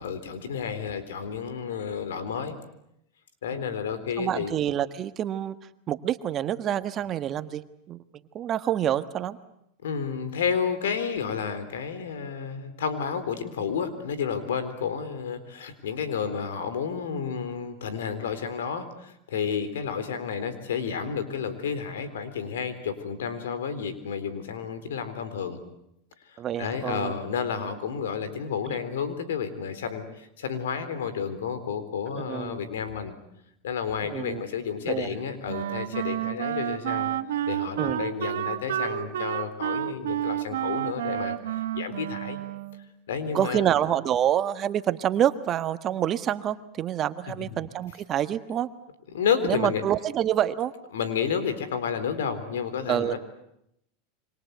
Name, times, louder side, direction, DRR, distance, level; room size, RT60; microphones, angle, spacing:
voice 1, 0.0-2.6 3.4-4.5 9.8-25.6 26.3-33.2 33.6-37.1 37.5-42.4 43.1-43.7 47.3-47.6 49.1-49.8 50.9-53.2, left 7 dB, 85° left, 12 dB, 3.8 m, -31 dB
voice 2, 4.2-5.6 5.9-8.0 8.3-9.4 26.4-27.1 28.7-28.8 32.2-32.6 34.1-34.4 34.8-35.1 37.8-38.0 43.3-48.7 49.4-50.7 52.9-53.2, right 10 dB, 35° right, 11 dB, 1.4 m, -27 dB
Wind instrument woodwind instrument, 35.5-42.9, right 12 dB, 85° right, 1.3 m, -30 dB
27.5 x 24.5 x 8.2 m, 0.78 s
hypercardioid pair, 115°, 0 cm